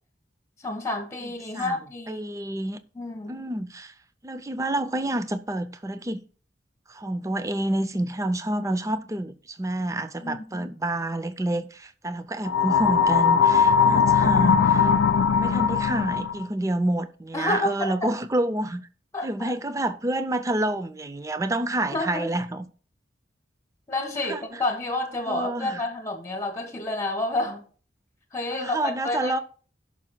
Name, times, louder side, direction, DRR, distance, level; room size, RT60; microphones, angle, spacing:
voice 1, 0.6-2.2 2.9-3.4 10.2-10.7 17.3-18.1 19.1-19.3 21.9-22.3 23.9-27.6 28.3-29.4, left 2 dB, 15° left, 1.5 m, -29 dB
voice 2, 1.2-1.8 2.1-2.8 3.3-3.9 4.2-6.2 6.9-14.9 15.4-18.9 19.2-22.7 24.2-24.6 25.3-25.8 28.5-29.4, right 1 dB, 15° right, 0.5 m, -28 dB
sound 1, 12.5-16.4, left 6 dB, 90° left, 0.4 m, -20 dB
16.5 x 5.8 x 2.2 m
head